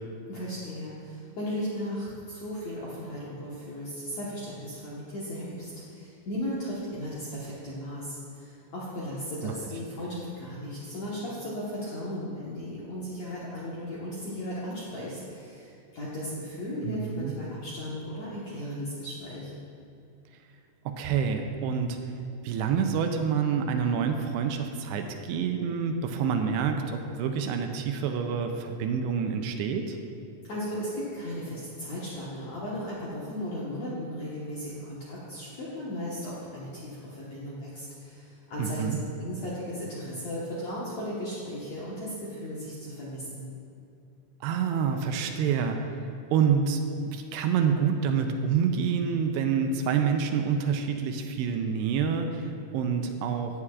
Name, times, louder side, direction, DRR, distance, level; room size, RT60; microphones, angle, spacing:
voice 1, 0.2-19.5 30.4-43.5, equal, 70° left, -8 dB, 1.6 m, -36 dB
voice 2, 16.8-17.3 20.9-22.0 22.4-30.0 38.6-39.0 44.4-45.9 46.3-46.8 47.1-53.6, right 6 dB, 80° right, 5 dB, 2.6 m, -27 dB
14.5 x 9.9 x 2.4 m, 2.6 s
omnidirectional pair, 5.1 m